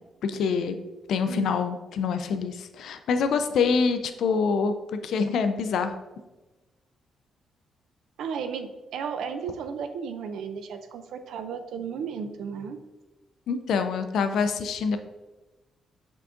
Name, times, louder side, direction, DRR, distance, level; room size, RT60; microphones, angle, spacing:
voice 1, 0.2-0.7 1.1-5.9 13.5-15.0, left 5 dB, 70° left, 9 dB, 0.3 m, -26 dB
voice 2, 8.2-12.8, right 6 dB, 90° right, 9 dB, 0.3 m, -34 dB
5.8 x 3.7 x 2.5 m, 1.1 s
cardioid pair, 160°, 0 cm